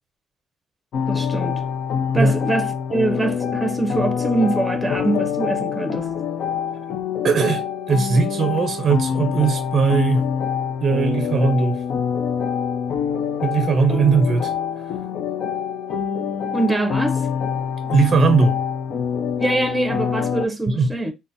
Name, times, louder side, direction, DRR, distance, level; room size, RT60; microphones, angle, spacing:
sound 1, 0.9-20.5, left 7 dB, 70° left, 0.5 m, -25 dB
voice 1, 1.1-1.6 2.1-6.1 16.5-17.3 19.4-21.1, right 2 dB, 10° right, 0.6 m, -23 dB
voice 2, 7.2-10.3 10.8-11.8 13.4-14.5 17.8-18.6 20.7-20.9, right 5 dB, 50° right, 0.5 m, -19 dB
3.8 x 2.1 x 2.5 m
cardioid pair, 90°, 0 cm